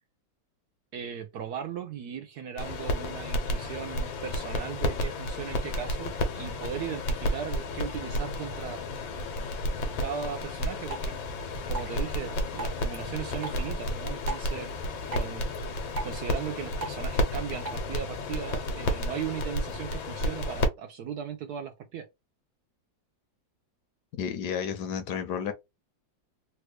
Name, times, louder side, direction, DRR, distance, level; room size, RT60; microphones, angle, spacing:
voice 1, 0.9-8.8 10.0-11.2 11.7-14.7 15.1-15.4 16.0-22.1, right 8 dB, 70° right, 1.0 m, -37 dB
sound 1, 2.6-20.7, left 1 dB, 90° left, 1.6 m, -32 dB
Drip, 10.8-17.8, right 2 dB, 55° right, 0.4 m, -43 dB
voice 2, 24.2-25.5, left 7 dB, 70° left, 1.2 m, -31 dB
3.4 x 2.4 x 3.1 m
omnidirectional pair, 2.1 m